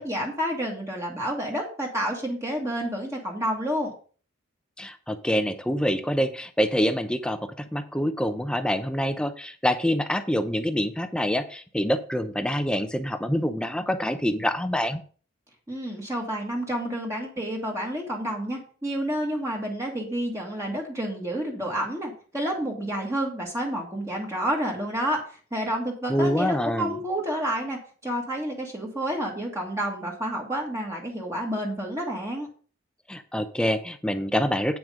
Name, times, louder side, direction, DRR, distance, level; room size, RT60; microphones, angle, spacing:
voice 1, 0.0-3.9 15.7-32.5, equal, 15° right, -1 dB, 1.7 m, -29 dB
voice 2, 4.8-15.0 26.1-27.0 33.1-34.8, equal, 5° left, 9 dB, 0.7 m, -26 dB
8.9 x 6.2 x 5.0 m, 0.41 s
head